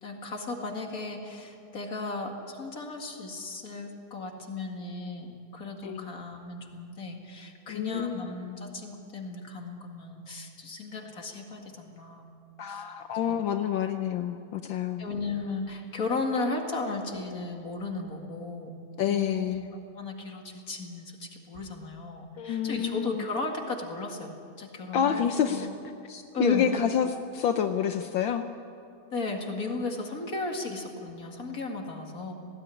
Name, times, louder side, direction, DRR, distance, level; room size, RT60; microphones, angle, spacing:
voice 1, 0.0-12.3 12.7-12.9 13.3-13.4 15.0-18.8 19.0-24.3 24.6-25.7 26.3-26.7 29.1-32.3, left 3 dB, 45° left, 2 dB, 2.5 m, -35 dB
voice 2, 7.7-8.3 12.6-15.0 19.0-19.6 22.4-23.3 24.9-25.7 26.1-27.1 27.3-28.4, left 9 dB, 70° left, 7 dB, 1.5 m, -28 dB
19.5 x 17.0 x 9.8 m, 2.5 s
omnidirectional pair, 2.3 m